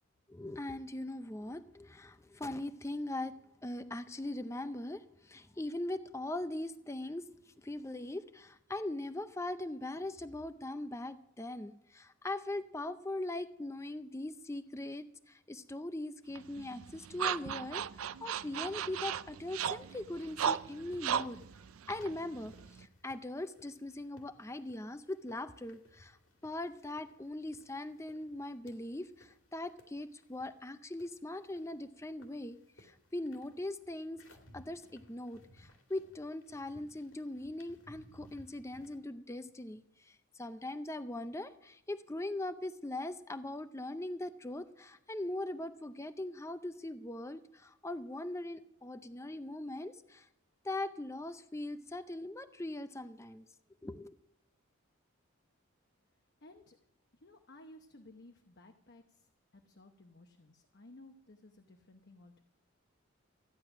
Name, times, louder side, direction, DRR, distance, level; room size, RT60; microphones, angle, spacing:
voice 1, 0.3-7.3 7.6-21.4 21.9-26.2 26.4-34.2 34.5-50.3 50.6-53.4 53.8-54.2, left 1 dB, 15° left, 11 dB, 0.5 m, -41 dB
sound 1, 16.4-22.9, right 8 dB, 85° right, 0.4 m, -37 dB
sound 2, 19.7-39.0, left 1 dB, 70° left, 2.5 m, -62 dB
voice 2, 56.4-56.8 57.1-62.4, left 1 dB, 50° left, 5 dB, 0.9 m, -57 dB
14.5 x 10.5 x 6.0 m, 0.76 s
head